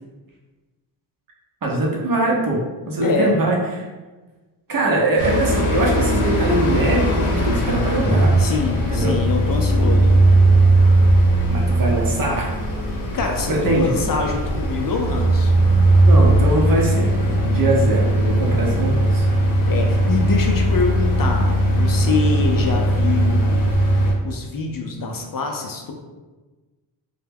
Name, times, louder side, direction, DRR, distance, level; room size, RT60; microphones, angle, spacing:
voice 1, 1.6-3.6 4.7-8.3 8.9-9.2 11.5-12.5 13.5-13.9 16.0-19.3, right 2 dB, 45° right, -1 dB, 0.7 m, -22 dB
voice 2, 3.0-3.4 8.4-10.2 13.1-15.5 19.7-23.7 24.2-25.9, left 4 dB, 45° left, 2 dB, 0.5 m, -25 dB
sound 1, 5.2-24.1, right 1 dB, 90° left, 0.7 m, -18 dB
2.1 x 2.1 x 3.3 m, 1.3 s
cardioid pair, 50°, 48 cm